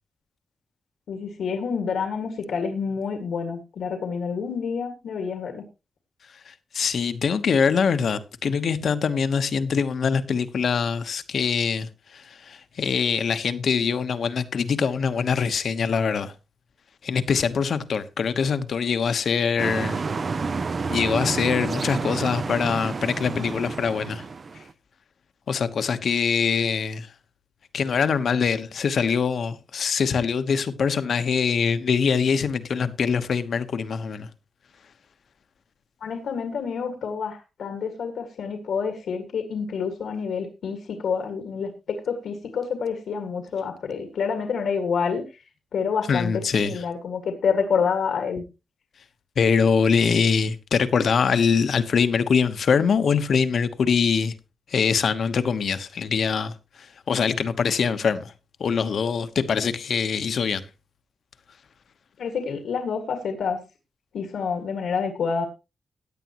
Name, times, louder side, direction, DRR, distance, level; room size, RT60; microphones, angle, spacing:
voice 1, 1.1-5.6 36.0-45.4 45.7-48.4 62.2-63.6 64.1-65.5, left 6 dB, 90° left, 2.0 m, -28 dB
voice 2, 6.4-16.3 17.0-20.0 20.9-24.2 24.5-24.6 25.5-27.1 27.7-34.3 46.1-46.8 49.4-54.3 54.7-58.3 58.6-60.6, left 6 dB, 60° left, 1.1 m, -23 dB
sound 1, 19.6-24.7, right 4 dB, 40° right, 0.6 m, -29 dB
16.5 x 9.9 x 3.0 m
wide cardioid pair, 140°, 0 cm